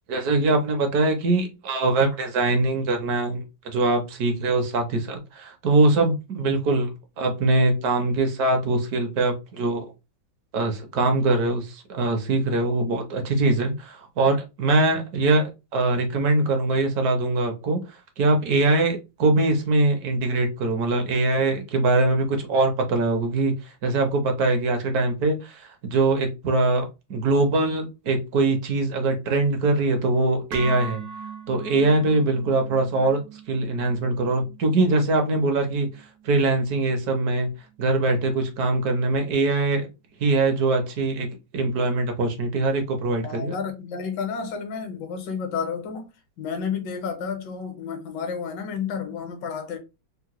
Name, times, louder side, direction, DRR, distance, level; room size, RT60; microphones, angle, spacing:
voice 1, 0.1-6.9 7.2-9.9 10.5-17.8 18.2-23.5 23.8-26.8 27.1-31.0 31.5-33.2 33.5-35.9 36.2-37.5 37.8-39.9 40.2-41.3 41.5-43.5, right 2 dB, 65° right, 1.1 m, -22 dB
sound 1, 30.5-38.6, right 5 dB, 80° right, 1.5 m, -41 dB
voice 2, 43.2-46.1 46.4-49.8, left 6 dB, 75° left, 1.4 m, -31 dB
3.6 x 2.1 x 2.9 m
omnidirectional pair, 2.0 m